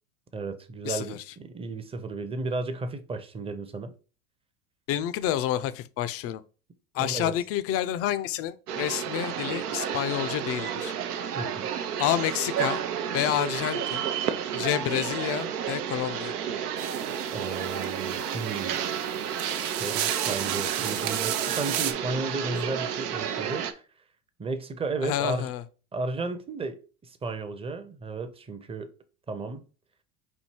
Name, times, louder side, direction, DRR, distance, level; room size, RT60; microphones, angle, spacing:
voice 1, 0.3-3.9 7.0-7.3 11.3-11.7 17.3-18.8 19.6-23.8 24.4-25.5 25.9-26.8 27.0-28.9 29.3-29.6, right 3 dB, 15° right, 0.6 m, -34 dB
voice 2, 0.8-1.2 4.9-6.4 6.9-10.9 12.0-12.8 13.1-14.1 14.5-16.3 25.0-25.6, left 12 dB, 35° left, 0.4 m, -29 dB
sound 1, 8.7-23.7, right 8 dB, 90° right, 0.7 m, -31 dB
sound 2, 16.8-21.9, right 11 dB, 50° right, 0.7 m, -33 dB
4.4 x 2.7 x 4.5 m
hypercardioid pair, 90°, 45 cm